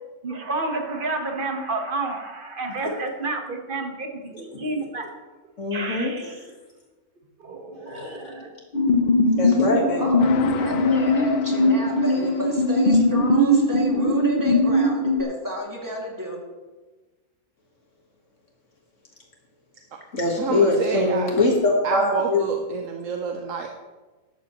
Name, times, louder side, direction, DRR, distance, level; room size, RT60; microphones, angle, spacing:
voice 1, 0.2-5.1 5.7-6.4 7.4-8.5, right 3 dB, 40° right, 3 dB, 1.5 m, -30 dB
voice 2, 5.6-6.1 7.9-8.2 9.4-10.0 20.1-22.4, left 2 dB, 70° left, 0 dB, 1.9 m, -22 dB
sound 1, 8.7-15.2, left 1 dB, 45° left, 0.9 m, -20 dB
voice 3, 10.0-16.4, right 1 dB, 15° right, -2 dB, 2.3 m, -32 dB
sound 2, 10.2-12.9, left 8 dB, 85° left, 1.1 m, -35 dB
voice 4, 20.4-21.3 21.8-23.7, right 6 dB, 80° right, 3 dB, 1.3 m, -28 dB
14.0 x 11.5 x 3.1 m, 1.2 s
omnidirectional pair, 1.4 m